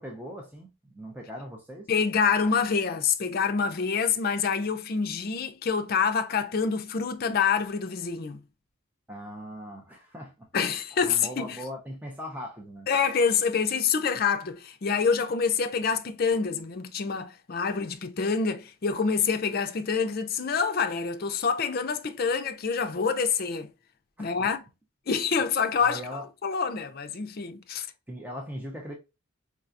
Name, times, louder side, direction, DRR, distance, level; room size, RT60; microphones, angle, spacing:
voice 1, 0.0-1.9 9.1-12.9 24.2-24.5 25.8-26.3 28.1-28.9, equal, 10° right, 0.5 m, -40 dB
voice 2, 1.9-8.4 10.5-11.6 12.9-23.7 24.2-24.6 25.1-27.9, left 5 dB, 45° left, 0.4 m, -26 dB
4.6 x 2.3 x 2.5 m
head